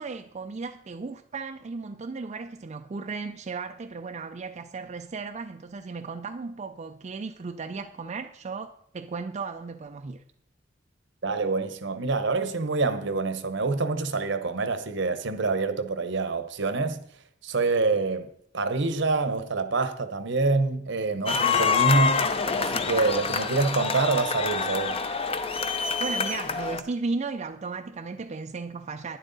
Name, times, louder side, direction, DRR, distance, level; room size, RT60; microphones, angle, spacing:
voice 1, 0.0-10.2 26.0-29.2, right 4 dB, 35° right, 0.4 m, -35 dB
voice 2, 11.2-17.0 17.4-18.3 18.5-25.0, right 3 dB, 65° right, 0.9 m, -26 dB
sound 1, 21.3-26.8, left 5 dB, 30° left, 0.7 m, -26 dB
11.5 x 10.0 x 4.0 m
head